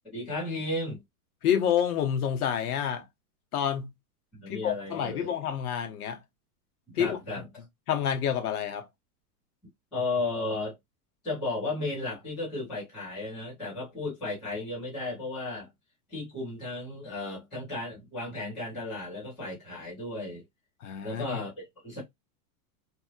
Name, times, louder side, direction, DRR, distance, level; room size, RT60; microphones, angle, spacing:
voice 1, 0.1-1.0 4.3-5.3 6.9-7.4 9.9-10.7 11.2-15.7 16.1-20.4 21.0-22.0, left 2 dB, ahead, 0.4 m, -34 dB
voice 2, 1.4-3.0 3.5-3.9 4.5-6.2 6.9-7.2 7.9-8.9 20.8-21.4, left 9 dB, 65° left, 1.0 m, -28 dB
2.9 x 2.8 x 2.3 m
supercardioid pair, 170°, 48 cm